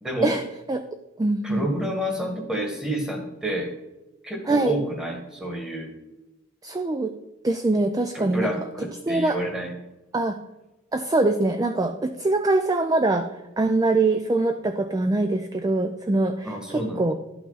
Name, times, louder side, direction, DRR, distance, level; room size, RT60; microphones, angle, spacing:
voice 1, 0.0-0.3 1.4-3.7 4.2-5.9 8.1-9.7 16.4-17.1, right 1 dB, 5° right, 2 dB, 1.4 m, -29 dB
voice 2, 1.2-1.7 4.5-4.8 6.6-7.1 7.4-8.5 9.0-9.4 10.1-10.4 10.9-13.3 13.6-17.2, right 2 dB, 20° right, 7 dB, 0.4 m, -23 dB
11.5 x 5.8 x 4.0 m, 1.0 s
head